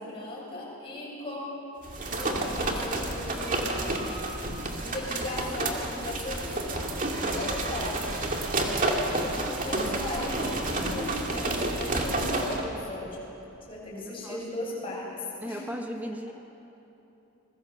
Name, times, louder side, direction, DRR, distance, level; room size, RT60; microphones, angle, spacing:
voice 1, 0.0-1.5 2.0-4.0 4.8-6.9 7.2-8.3 9.1-13.1 13.7-15.6, left 1 dB, 25° left, -5 dB, 7.7 m, -37 dB
sound 1, 1.8-12.6, right 2 dB, 35° right, 2.3 m, -30 dB
voice 2, 8.7-9.2 13.9-14.7 15.4-16.3, equal, 10° right, 3 dB, 1.0 m, -38 dB
26.5 x 21.0 x 7.0 m, 3.0 s
head